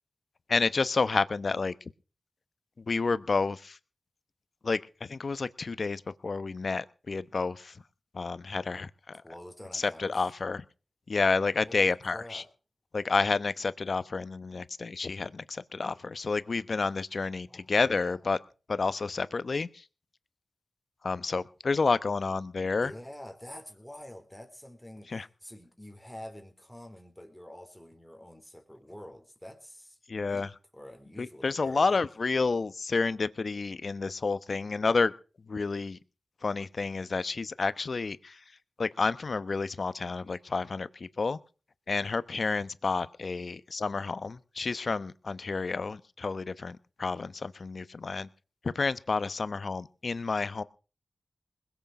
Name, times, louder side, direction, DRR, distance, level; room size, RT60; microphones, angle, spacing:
voice 1, 0.5-1.7 2.8-3.8 4.6-7.8 8.1-8.9 9.7-10.6 11.1-12.4 12.9-18.4 18.7-19.8 21.0-22.9 25.1-25.3 30.1-30.5 31.2-35.1 35.5-36.0 36.4-38.4 38.8-41.4 41.9-48.3 48.6-50.6, left 4 dB, 60° left, 15 dB, 1.0 m, -30 dB
voice 2, 9.1-10.3 11.7-12.5 17.5-17.7 18.0-18.2 22.6-30.5 30.7-32.0, left 1 dB, 5° left, 5 dB, 3.8 m, -47 dB
21.0 x 8.3 x 6.2 m, 0.36 s
cardioid pair, 55°, 0 cm